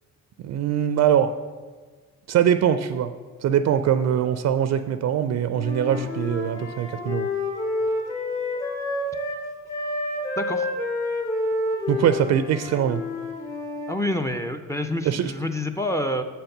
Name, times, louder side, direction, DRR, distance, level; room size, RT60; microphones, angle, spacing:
voice 1, 0.4-1.3 2.3-3.1 3.4-7.3 11.9-13.0 15.1-15.3, right 9 dB, 60° right, 11 dB, 0.4 m, -22 dB
Wind instrument woodwind instrument, 5.5-9.4 9.7-14.0, left 2 dB, 65° left, 2.4 m, -29 dB
voice 2, 10.4-10.7 13.9-16.2, left 1 dB, 10° left, 7 dB, 0.5 m, -27 dB
7.1 x 4.5 x 6.5 m, 1.4 s
cardioid pair, 90°, 30 cm